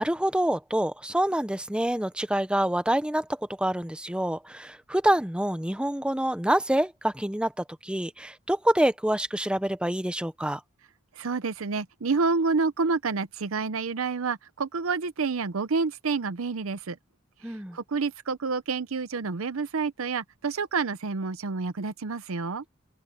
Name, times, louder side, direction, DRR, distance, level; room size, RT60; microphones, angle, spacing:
voice 1, 0.0-3.2 3.6-7.5 7.8-10.6 17.4-17.8, right 1 dB, 5° right, 0.7 m, -26 dB
voice 2, 11.2-17.0 17.5-22.6, right 4 dB, 85° right, 0.7 m, -28 dB
open air
head